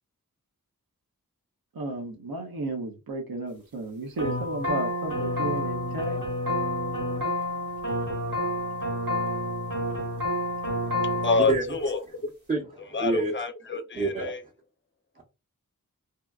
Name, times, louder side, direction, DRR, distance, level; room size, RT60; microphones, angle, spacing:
voice 1, 1.7-6.2, right 2 dB, 85° right, 0.6 m, -33 dB
sound 1, 4.2-11.6, left 1 dB, 70° right, 1.2 m, -29 dB
voice 2, 10.7-12.0 12.9-14.4, left 4 dB, 35° left, 0.4 m, -28 dB
voice 3, 12.5-13.3 13.9-14.3 15.2-15.3, right 3 dB, 20° right, 0.7 m, -27 dB
2.7 x 2.2 x 2.3 m
wide cardioid pair, 45°, 35 cm